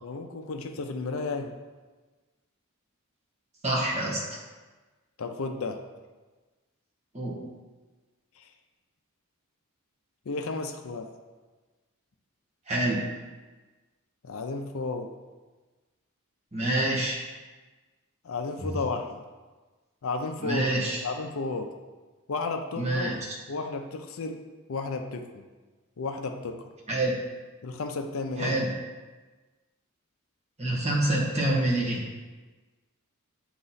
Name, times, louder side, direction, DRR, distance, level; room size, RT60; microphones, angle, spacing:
voice 1, 0.0-1.5 5.2-5.8 8.4-8.5 10.3-11.1 14.2-15.1 18.2-19.2 20.0-21.7 22.3-23.1 23.5-24.4 24.7-25.4 26.0-26.7 27.6-28.6, left 3 dB, 65° left, 5 dB, 0.5 m, -33 dB
voice 2, 3.6-4.2 7.1-7.4 12.7-13.0 16.5-17.2 18.6-18.7 20.4-21.0 22.8-23.1 26.9-27.1 28.4-28.7 30.6-32.0, right 1 dB, 30° right, -4 dB, 1.3 m, -26 dB
8.6 x 2.9 x 4.0 m, 1.3 s
head